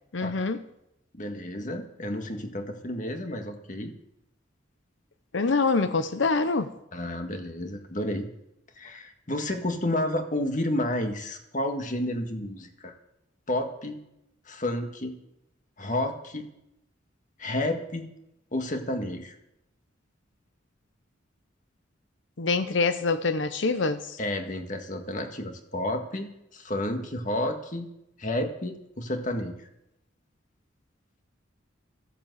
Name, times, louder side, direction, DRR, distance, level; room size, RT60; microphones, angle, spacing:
voice 1, 0.1-0.6 5.3-6.7 22.4-24.2, left 4 dB, 70° left, 0.8 m, -25 dB
voice 2, 1.1-3.9 6.9-8.3 8.8-12.9 13.5-14.0 14.5-15.2 15.8-16.5 17.4-18.1 18.5-19.4 24.2-27.9 28.2-29.7, left 1 dB, 40° left, 1.8 m, -31 dB
14.0 x 10.0 x 8.0 m
head